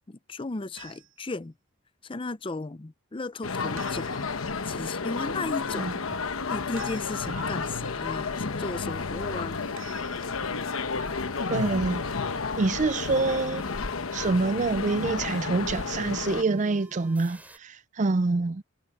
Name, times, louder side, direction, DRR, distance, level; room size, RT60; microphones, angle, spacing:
voice 1, 0.1-1.5 2.0-4.3 4.6-5.9 6.5-9.6, left 3 dB, 25° left, 0.5 m, -35 dB
sound 1, 0.8-1.3 3.8-4.5 6.8-7.5 9.8-10.6, right 8 dB, 85° right, 6.2 m, -49 dB
sound 2, 3.4-16.4, left 4 dB, 85° left, 1.0 m, -31 dB
sound 3, 6.9-17.6, equal, 10° right, 5.6 m, -51 dB
voice 2, 11.5-12.0 12.6-13.6 14.1-18.6, right 3 dB, 35° right, 0.4 m, -26 dB
head